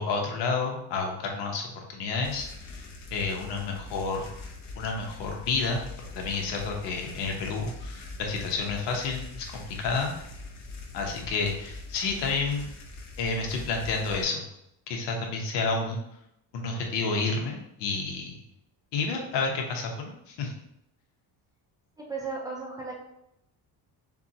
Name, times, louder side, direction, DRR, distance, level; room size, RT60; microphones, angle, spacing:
voice 1, 0.0-2.5 2.7-2.8 3.1-4.3 4.8-5.8 6.2-10.1 10.9-12.7 13.2-14.4 14.9-16.0 16.5-18.4 18.9-20.5, left 4 dB, 70° left, 1 dB, 1.0 m, -30 dB
sound 1, 2.2-14.2, left 3 dB, 40° left, 0.7 m, -43 dB
voice 2, 22.0-23.0, right 4 dB, 10° right, -4 dB, 0.5 m, -35 dB
6.8 x 2.3 x 2.8 m, 0.81 s
cardioid pair, 165°, 44 cm